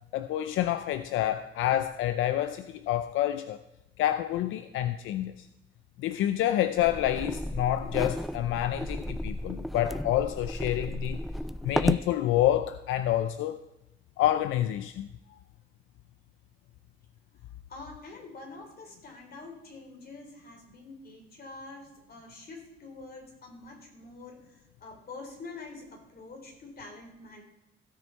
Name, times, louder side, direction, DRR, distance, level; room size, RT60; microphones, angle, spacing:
voice 1, 0.1-3.6 4.0-5.5 6.0-11.2 11.6-13.6 14.2-15.1, left 12 dB, 85° left, 11 dB, 0.5 m, -28 dB
sound 1, 6.8-12.1, equal, ahead, 0.3 m, -33 dB
voice 2, 17.7-27.4, left 3 dB, 50° left, 2 dB, 3.6 m, -46 dB
16.0 x 6.3 x 4.4 m, 0.93 s
cardioid pair, 90°, 20 cm